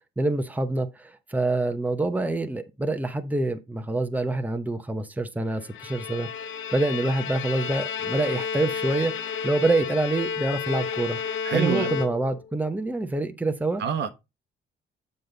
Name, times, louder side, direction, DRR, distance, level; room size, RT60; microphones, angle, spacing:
voice 1, 0.2-11.2 11.5-13.8, right 2 dB, 10° right, 0.9 m, -26 dB
Bowed string instrument, 5.5-12.5, left 7 dB, 85° left, 0.7 m, -32 dB
voice 2, 11.4-12.0 13.8-14.1, right 8 dB, 60° right, 1.0 m, -26 dB
7.7 x 5.3 x 3.9 m
cardioid pair, 90°, 20 cm